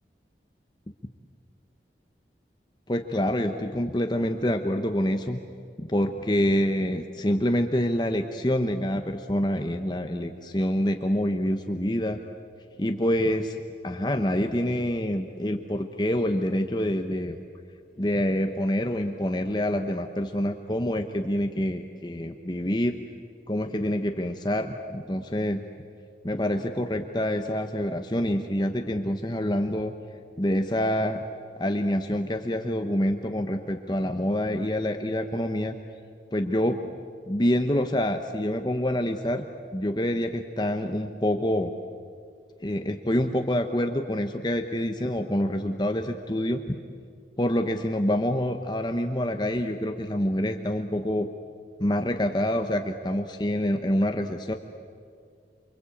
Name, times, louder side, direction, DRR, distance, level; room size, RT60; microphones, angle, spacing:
voice 1, 2.9-5.4 5.8-12.2 12.8-13.6 13.8-17.4 18.0-23.0 23.5-25.6 26.2-29.9 30.4-31.2 31.6-35.7 36.3-36.8 37.3-39.5 39.7-41.7 42.6-46.8 47.4-51.3 51.8-54.5, left 1 dB, 25° left, 5 dB, 1.0 m, -26 dB
29.0 x 24.0 x 8.6 m, 2.2 s
head